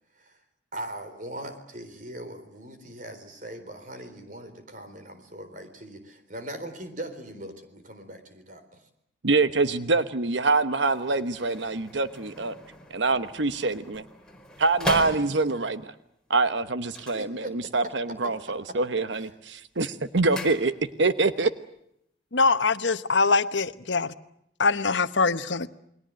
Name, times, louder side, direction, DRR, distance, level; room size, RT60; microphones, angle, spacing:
voice 1, 0.7-8.9 17.1-17.9 18.2-18.5 19.1-19.3, right 1 dB, 45° right, 4.0 m, -40 dB
voice 2, 9.2-12.5 12.9-14.0 14.6-15.9 16.3-20.7 21.0-21.5, right 3 dB, 75° right, 1.0 m, -25 dB
sound 1, 10.7-15.8 16.8-18.0 18.2-18.7 19.1-21.2 21.4-21.5, left 1 dB, 5° left, 4.4 m, -39 dB
voice 3, 22.3-24.1 24.6-25.7, left 4 dB, 75° left, 1.0 m, -23 dB
29.0 x 21.5 x 7.6 m
head